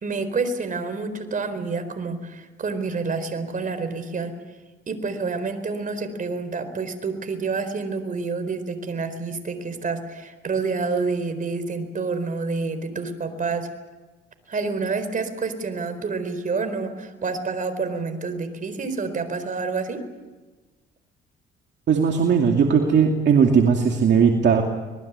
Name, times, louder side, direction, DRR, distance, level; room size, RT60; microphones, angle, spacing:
voice 1, 0.0-4.3 4.9-13.7 14.5-20.0, right 4 dB, 40° right, 9 dB, 4.2 m, -28 dB
voice 2, 21.9-24.6, right 6 dB, 60° right, 2 dB, 2.6 m, -18 dB
25.5 x 20.5 x 8.3 m, 1.2 s
cardioid pair, 90°, 20 cm